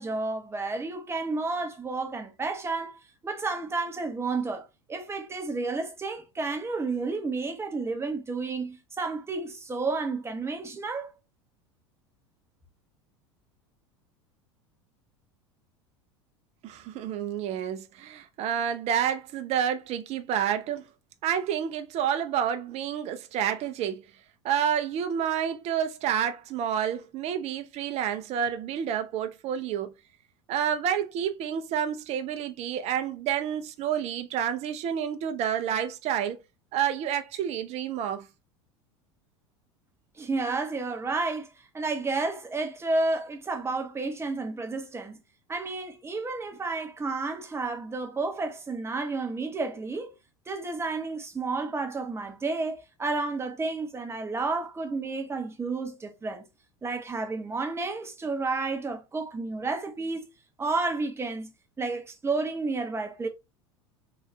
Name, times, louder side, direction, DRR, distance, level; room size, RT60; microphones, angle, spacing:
voice 1, 0.0-11.1 40.2-45.2 45.5-50.1 50.5-56.5 56.8-60.3 60.6-63.3, right 3 dB, 15° right, 0.9 m, -31 dB
voice 2, 16.6-20.9 21.2-24.1 24.4-29.9 30.5-36.4 36.7-38.3, right 9 dB, 45° right, 0.6 m, -29 dB
3.9 x 2.5 x 3.1 m
figure-of-eight pair, 80°, 15 cm